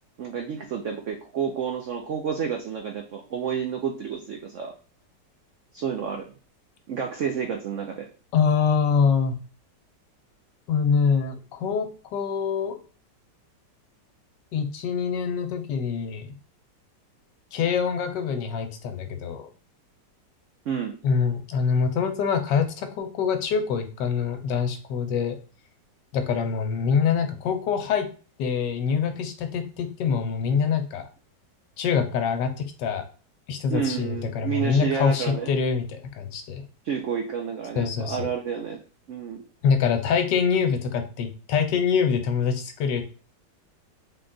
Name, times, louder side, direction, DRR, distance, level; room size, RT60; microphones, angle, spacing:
voice 1, 0.2-4.7 5.7-6.3 6.9-8.1 20.7-21.0 33.7-35.5 36.8-38.8 39.1-39.4, right 7 dB, 85° right, 3 dB, 0.6 m, -30 dB
voice 2, 8.3-9.4 10.7-12.8 14.5-16.3 17.5-19.5 21.0-25.4 26.1-28.1 28.4-31.0 31.8-32.5 32.8-33.0 33.5-35.8 36.2-36.6 37.8-38.3 39.6-43.0, left 6 dB, 80° left, 7 dB, 1.3 m, -25 dB
3.8 x 2.3 x 3.8 m, 0.38 s
omnidirectional pair, 1.9 m